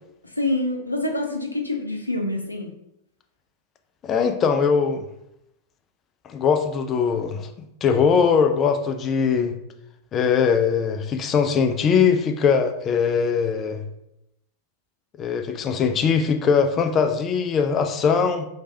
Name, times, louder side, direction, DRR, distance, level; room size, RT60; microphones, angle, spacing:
voice 1, 0.2-2.7, left 2 dB, 85° left, 2 dB, 0.5 m, -26 dB
voice 2, 4.0-5.0 6.3-7.5 7.8-9.5 10.1-13.8 15.2-18.5, left 6 dB, 30° left, 6 dB, 0.4 m, -21 dB
3.2 x 3.2 x 2.7 m, 0.85 s
figure-of-eight pair, 90°, 0 cm